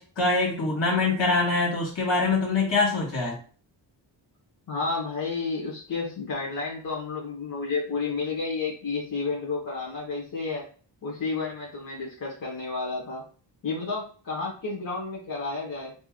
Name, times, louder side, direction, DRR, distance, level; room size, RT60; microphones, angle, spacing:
voice 1, 0.0-3.4, left 3 dB, 70° left, -3 dB, 2.0 m, -24 dB
voice 2, 4.7-10.7 11.0-13.2 13.6-15.9, left 4 dB, 45° left, -4 dB, 1.3 m, -31 dB
5.4 x 2.7 x 2.5 m, 0.41 s
cardioid pair, 85°, 46 cm